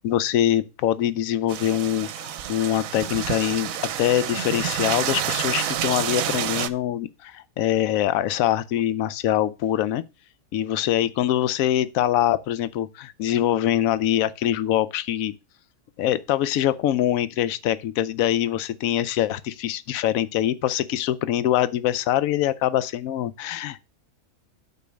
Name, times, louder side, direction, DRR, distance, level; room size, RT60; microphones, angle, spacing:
voice 1, 0.0-3.7 4.0-10.0 10.5-15.3 16.0-23.9, left 12 dB, 70° left, 1.0 m, -24 dB
sound 1, 1.5-6.7, right 10 dB, 65° right, 1.0 m, -28 dB
8.3 x 4.6 x 6.3 m
omnidirectional pair, 1.6 m